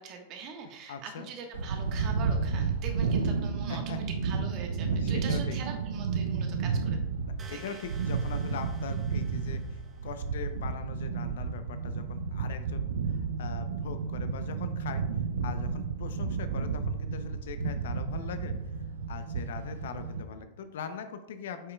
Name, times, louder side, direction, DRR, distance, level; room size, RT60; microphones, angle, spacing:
voice 1, 0.0-7.0 7.5-7.8, right 5 dB, 45° right, 3 dB, 1.3 m, -43 dB
voice 2, 0.9-1.3 3.7-4.0 5.0-5.6 7.3-15.0 15.4-18.5 19.1-21.7, left 6 dB, 75° left, 9 dB, 0.6 m, -41 dB
sound 1, 1.5-20.2, right 5 dB, 80° right, 0.5 m, -32 dB
sound 2, 7.4-10.3, right 3 dB, 25° right, 0.9 m, -52 dB
8.2 x 5.7 x 2.3 m, 0.92 s
hypercardioid pair, 100°, 0 cm